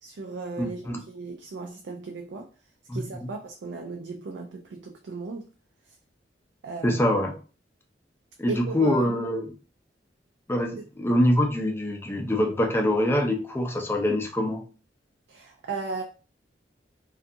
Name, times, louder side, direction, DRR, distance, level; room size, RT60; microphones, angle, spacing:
voice 1, 0.0-2.5 2.9-5.5 6.6-7.0 8.5-9.1 15.3-16.0, right 3 dB, 75° right, 0.4 m, -36 dB
voice 2, 0.6-1.0 2.9-3.0 6.8-7.3 8.4-9.5 10.5-14.6, left 1 dB, 15° left, 0.5 m, -24 dB
2.6 x 2.4 x 2.5 m
head